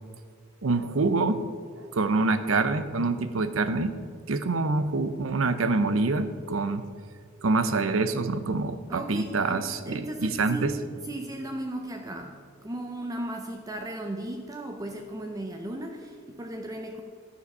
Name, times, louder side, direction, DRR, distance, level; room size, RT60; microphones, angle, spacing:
voice 1, 0.6-1.4 1.9-3.9 4.3-6.9 7.4-10.8, right 3 dB, 75° right, 0.7 m, -26 dB
voice 2, 8.9-17.0, right 1 dB, 15° right, 0.5 m, -36 dB
12.0 x 7.1 x 5.4 m
head